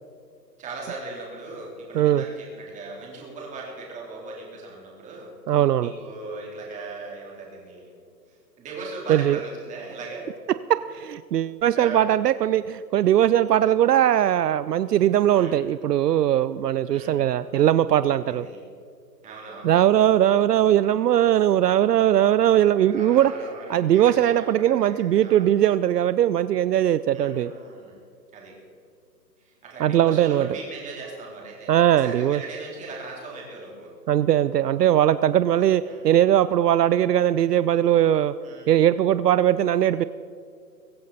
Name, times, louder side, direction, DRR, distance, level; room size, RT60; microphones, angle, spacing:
voice 1, 0.6-7.9 8.3-10.3 11.7-12.0 15.3-15.6 16.9-17.2 18.3-18.6 19.2-19.7 22.9-25.5 27.1-28.0 28.3-28.5 29.4-33.9 35.9-36.1 38.4-38.7, right 3 dB, 15° right, -3 dB, 3.7 m, -39 dB
voice 2, 5.5-5.9 9.1-9.4 10.7-18.5 19.6-23.3 23.7-27.5 29.8-30.5 31.7-32.4 34.1-38.3 38.7-40.0, right 11 dB, 70° right, 14 dB, 0.6 m, -20 dB
23.5 x 9.4 x 4.2 m, 2.4 s
hypercardioid pair, 150°, 50 cm